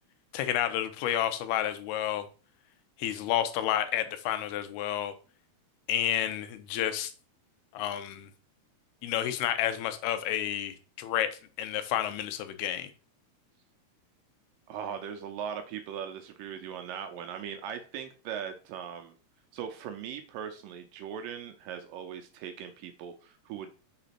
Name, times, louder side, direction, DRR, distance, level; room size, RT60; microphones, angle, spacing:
voice 1, 0.3-2.3 3.0-5.1 5.9-7.1 7.7-8.3 9.0-12.9, left 11 dB, 90° left, 10 dB, 2.7 m, -30 dB
voice 2, 14.7-19.1 19.5-23.7, right 8 dB, 75° right, 7 dB, 2.2 m, -39 dB
6.0 x 3.8 x 5.8 m, 0.37 s
omnidirectional pair, 4.4 m